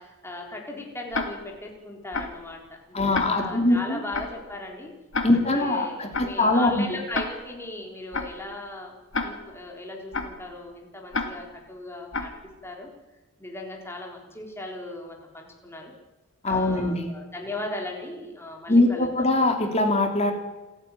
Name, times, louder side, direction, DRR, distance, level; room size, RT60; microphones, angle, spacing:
voice 1, 0.0-4.9 5.3-8.9 9.2-12.3 12.6-12.9 13.4-15.9 16.5-19.1, left 2 dB, 10° left, 0 dB, 3.9 m, -37 dB
Tick-tock, 1.1-1.6 2.1-2.5 3.1-3.6 4.1-4.5 5.1-5.6 6.1-6.5 7.1-7.6 8.1-8.5 9.1-9.6 10.1-10.5 11.1-11.6 12.1-12.5, left 3 dB, 55° left, 2.3 m, -31 dB
voice 2, 2.9-4.0 5.2-6.8 16.4-17.1 18.7-20.3, left 2 dB, 30° left, 4 dB, 2.8 m, -22 dB
28.5 x 9.9 x 9.3 m, 1.1 s
head